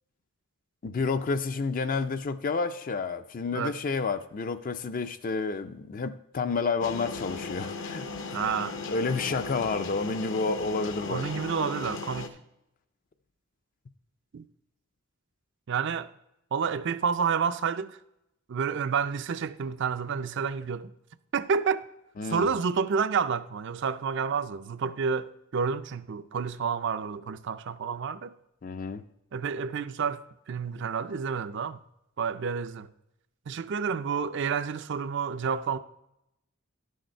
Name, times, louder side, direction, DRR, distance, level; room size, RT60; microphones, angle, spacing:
voice 1, 0.8-8.1 8.9-11.3 22.2-22.5 28.6-29.0, left 4 dB, 40° left, 0.4 m, -30 dB
sound 1, 6.8-12.3, left 4 dB, 60° left, 0.7 m, -37 dB
voice 2, 8.3-8.8 11.1-12.3 14.3-14.4 15.7-16.1 16.5-18.0 18.5-20.9 21.3-21.8 22.3-28.3 29.3-31.8 32.2-32.9 33.5-35.8, right 6 dB, 55° right, 0.4 m, -29 dB
11.0 x 6.5 x 4.4 m
head